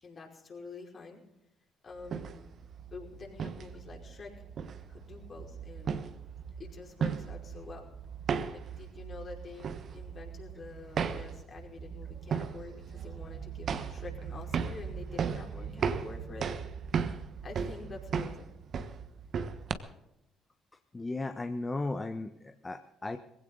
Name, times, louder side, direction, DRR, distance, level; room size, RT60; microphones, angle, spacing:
voice 1, 0.0-1.2 1.8-2.5 2.9-4.3 4.9-6.0 6.6-7.9 8.5-16.5 17.4-18.5, left 4 dB, 45° left, 0 dB, 5.2 m, -47 dB
sound 1, 2.0-19.7, right 6 dB, 55° right, 1.3 m, -37 dB
voice 2, 20.9-23.2, left 2 dB, 25° left, 8 dB, 1.1 m, -35 dB
21.0 x 16.5 x 4.0 m, 0.87 s
hypercardioid pair, 55°, 0 cm